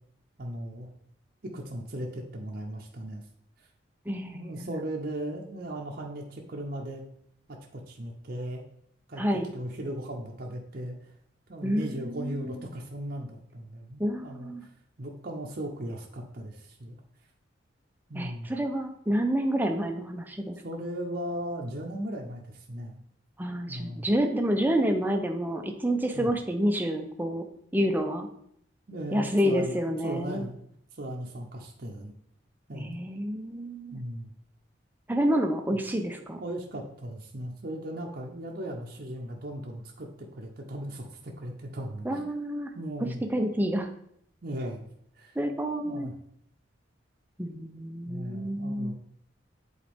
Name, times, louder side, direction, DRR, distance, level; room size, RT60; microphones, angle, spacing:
voice 1, 0.4-0.9 1.5-3.2 4.3-7.0 7.5-8.6 9.1-11.1 11.5-14.5 15.0-17.0 18.1-18.5 20.6-23.0 23.7-24.1 26.1-26.3 28.9-30.6 31.0-32.1 32.7-33.0 33.9-34.3 35.7-35.8 36.4-42.2 42.7-43.2 44.4-44.8 45.2-45.4 45.8-46.1 48.1-48.9, right 1 dB, 50° right, 0 dB, 0.7 m, -37 dB
voice 2, 4.1-4.7 9.2-9.5 11.6-12.6 14.0-14.6 18.1-20.6 23.4-27.4 27.7-28.3 29.1-30.5 32.7-34.0 35.1-36.4 42.0-42.7 43.3-43.9 45.4-46.1 47.4-48.9, equal, 10° right, 5 dB, 0.5 m, -28 dB
7.6 x 4.0 x 3.5 m, 0.70 s
head